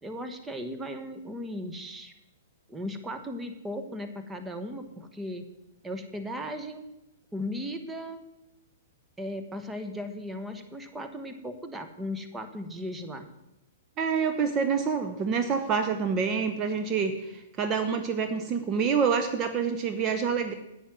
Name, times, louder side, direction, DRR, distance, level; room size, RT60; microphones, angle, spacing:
voice 1, 0.0-2.1 2.7-5.4 5.8-6.8 7.3-8.2 9.2-13.3, equal, 10° right, 7 dB, 1.1 m, -37 dB
voice 2, 14.0-20.5, right 6 dB, 30° right, 7 dB, 0.9 m, -27 dB
10.0 x 8.9 x 6.1 m, 0.92 s
hypercardioid pair, 125°, 0 cm